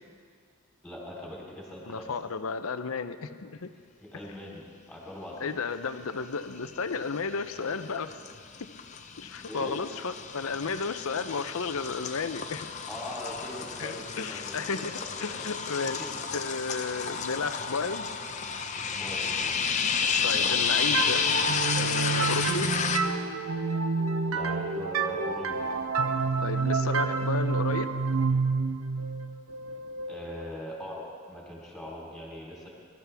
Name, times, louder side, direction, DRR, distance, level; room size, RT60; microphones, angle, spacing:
voice 1, 0.8-2.1 4.1-5.6 9.5-9.8 12.9-15.5 16.0-16.1 18.9-19.5 24.2-25.7 30.1-32.7, equal, ahead, -5 dB, 3.5 m, -41 dB
voice 2, 1.9-3.7 5.4-8.2 9.2-12.8 13.8-18.1 20.2-21.3 21.7-22.7 26.4-27.9, left 4 dB, 75° left, 10 dB, 0.7 m, -33 dB
sound 1, 6.7-7.2 7.5-23.0, left 6 dB, 35° left, 0.6 m, -31 dB
sound 2, 20.9-30.5, right 4 dB, 80° right, 0.8 m, -29 dB
22.0 x 12.5 x 3.5 m, 2.1 s
head